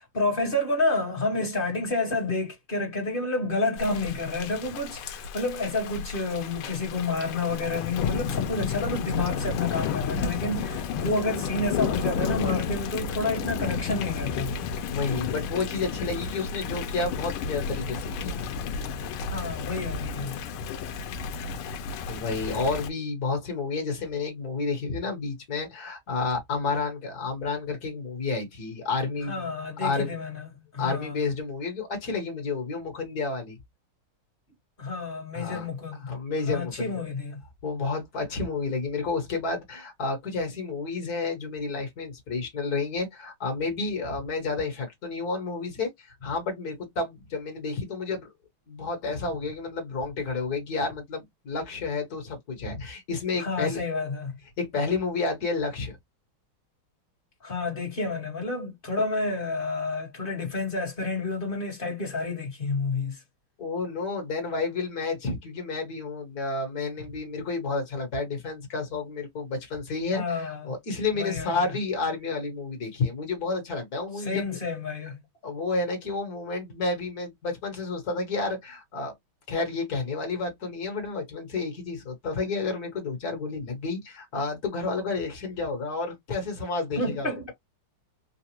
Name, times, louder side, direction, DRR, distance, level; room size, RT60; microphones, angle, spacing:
voice 1, 0.1-14.5 19.3-20.4 29.2-30.5 30.7-31.2 34.8-36.1 36.4-37.4 53.4-54.3 57.4-63.2 70.1-70.7 71.1-71.7 74.2-75.2 87.0-87.5, left 3 dB, 25° left, 1.4 m, -29 dB
Thunder / Rain, 3.8-22.9, left 6 dB, 80° left, 1.5 m, -32 dB
voice 2, 14.9-18.4 22.1-29.5 29.8-30.1 30.8-33.6 35.3-35.7 36.1-36.9 37.6-48.3 48.7-53.8 54.6-56.0 63.6-74.6 75.4-79.1 79.5-87.5, left 3 dB, 50° left, 1.7 m, -30 dB
4.0 x 2.4 x 2.9 m
omnidirectional pair, 2.4 m